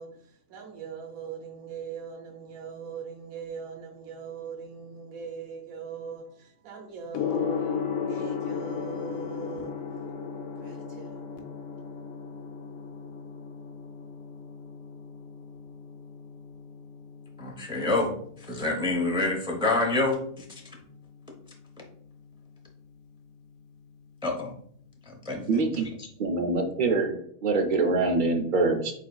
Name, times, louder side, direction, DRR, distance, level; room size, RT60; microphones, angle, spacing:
voice 1, 0.0-9.7 10.6-11.3, right 6 dB, 90° right, 1.2 m, -41 dB
Gong, 7.1-26.2, left 6 dB, 70° left, 0.8 m, -37 dB
voice 2, 17.4-20.4 24.2-24.5 25.1-25.9, left 2 dB, 5° right, 0.5 m, -28 dB
voice 3, 25.5-25.9 26.2-28.9, right 3 dB, 50° right, 0.6 m, -25 dB
8.1 x 2.8 x 2.3 m
omnidirectional pair, 1.5 m